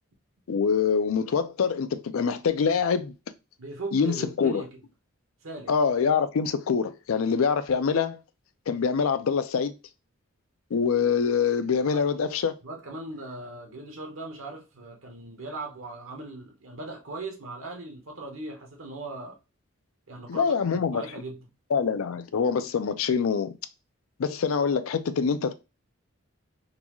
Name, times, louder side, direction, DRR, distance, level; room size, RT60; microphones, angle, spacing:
voice 1, 0.5-3.1 3.9-4.6 5.7-8.2 8.7-9.7 10.7-12.5 20.3-21.0 21.7-23.5 24.2-25.5, left 6 dB, 80° left, 0.4 m, -25 dB
voice 2, 3.6-4.7 5.4-5.7 11.9-12.0 12.6-19.4 20.1-21.5, right 2 dB, 75° right, 0.9 m, -39 dB
3.9 x 2.3 x 3.0 m
head